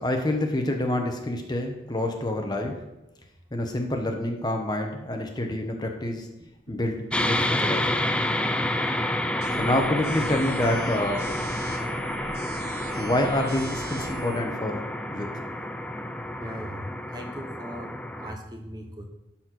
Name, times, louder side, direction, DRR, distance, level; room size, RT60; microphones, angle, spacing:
voice 1, 0.0-2.8 3.5-6.3 6.7-8.0 9.5-11.3 13.0-14.9 15.1-15.3, left 1 dB, 20° left, 3 dB, 0.9 m, -27 dB
sound 1, 7.1-18.3, left 1 dB, 5° left, 0.4 m, -29 dB
sound 2, 9.4-14.4, right 2 dB, 55° right, 1.2 m, -39 dB
voice 2, 16.4-16.9 17.1-19.1, equal, 20° right, 3 dB, 0.9 m, -39 dB
12.5 x 4.3 x 6.0 m, 0.96 s
head